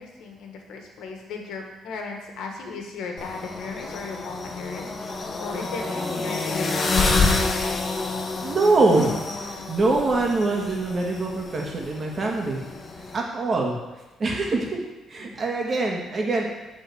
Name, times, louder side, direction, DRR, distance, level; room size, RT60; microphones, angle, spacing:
voice 1, 0.0-4.9 5.4-7.3 15.2-15.4, left 4 dB, 80° left, 2 dB, 1.6 m, -36 dB
sound 1, 3.2-13.2, left 3 dB, 35° left, 1.5 m, -28 dB
voice 2, 8.4-12.6 13.1-13.8 14.2-16.5, right 3 dB, 35° right, 0 dB, 1.9 m, -24 dB
11.0 x 4.2 x 7.0 m, 1.1 s
cardioid pair, 120°, 0 cm